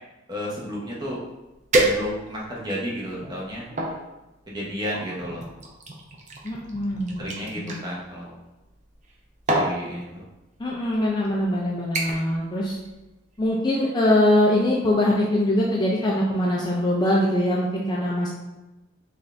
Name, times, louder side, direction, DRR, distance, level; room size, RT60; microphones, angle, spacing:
voice 1, 0.3-1.2 1.7-3.7 4.5-5.4 7.2-8.4 9.5-10.2, equal, 20° right, -5 dB, 0.8 m, -32 dB
sound 1, 1.1-1.2 1.7-2.5 3.1-4.0 4.9-7.8 8.9-9.1 9.5-9.8 10.7-10.8 11.2-11.5 11.9-12.4 12.7-13.0 13.4-13.5, right 1 dB, 35° right, 0.5 m, -27 dB
voice 2, 6.4-7.3 7.6-7.8 10.6-12.8 13.4-18.3, left 1 dB, 20° left, -4 dB, 0.4 m, -22 dB
3.9 x 2.4 x 3.3 m, 1.0 s
head